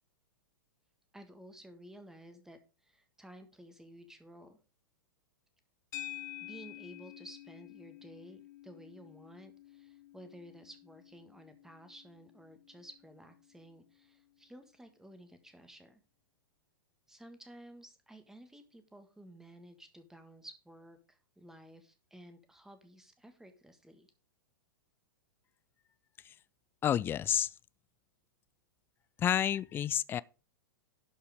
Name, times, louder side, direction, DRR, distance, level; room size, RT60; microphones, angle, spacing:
voice 1, 1.1-4.6 6.4-16.0 17.1-24.1, right 1 dB, 5° right, 1.7 m, -54 dB
sound 1, 5.9-14.4, left 14 dB, 55° left, 1.5 m, -50 dB
voice 2, 26.8-27.5 29.2-30.2, left 10 dB, 20° left, 0.4 m, -29 dB
11.5 x 5.4 x 5.2 m
figure-of-eight pair, 100°, 11 cm